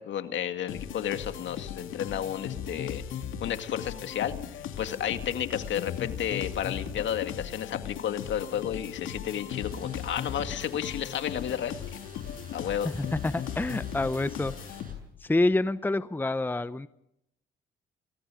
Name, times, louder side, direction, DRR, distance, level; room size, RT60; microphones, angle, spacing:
voice 1, 0.0-3.0 3.4-11.7 12.5-12.9, left 9 dB, 70° left, 8 dB, 2.1 m, -32 dB
sound 1, 0.7-15.2, left 9 dB, 85° left, 2.6 m, -37 dB
sound 2, 9.5-14.9, right 3 dB, 45° right, 7.9 m, -53 dB
voice 2, 12.9-14.5 15.2-16.9, left 2 dB, 10° left, 14 dB, 0.8 m, -27 dB
27.5 x 21.0 x 5.1 m, 0.78 s
cardioid pair, 90°, 20 cm